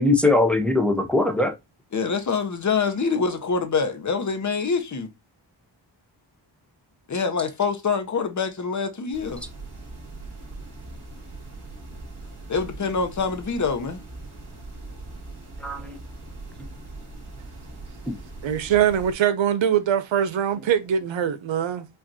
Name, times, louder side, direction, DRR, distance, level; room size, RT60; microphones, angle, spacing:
voice 1, 0.0-1.5 15.6-16.0 18.1-18.2, left 2 dB, 5° left, 0.7 m, -21 dB
voice 2, 1.9-5.1 7.1-9.4 12.5-14.0, left 5 dB, 40° left, 0.8 m, -25 dB
sound 1, 9.1-19.1, right 2 dB, 40° right, 2.3 m, -40 dB
voice 3, 18.4-21.9, right 9 dB, 75° right, 0.7 m, -22 dB
5.0 x 2.5 x 2.7 m
wide cardioid pair, 90°, 46 cm